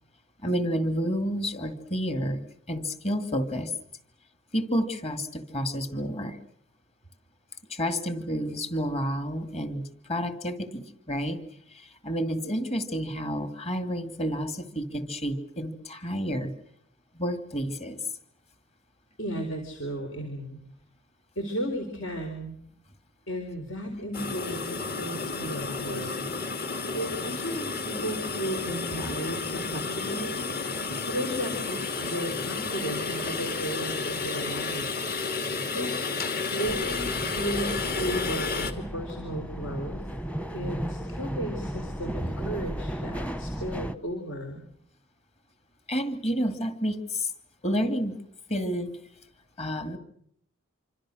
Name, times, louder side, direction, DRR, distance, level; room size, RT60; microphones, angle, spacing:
voice 1, 0.4-3.7 4.5-6.4 7.7-11.4 11.7-16.5 17.1-18.0 45.9-47.3 47.6-48.2 48.5-48.9 49.6-50.0, equal, 30° left, 2.5 m, -30 dB
voice 2, 19.2-20.6 21.4-22.6 23.3-26.1 26.9-30.5 31.1-34.9 35.7-35.9 36.5-40.0 40.5-44.6, right 1 dB, 75° left, 4.1 m, -34 dB
sound 1, 24.1-38.7, left 4 dB, 50° left, 2.5 m, -31 dB
sound 2, 36.7-44.0, equal, 5° left, 1.0 m, -34 dB
27.0 x 25.5 x 6.4 m
head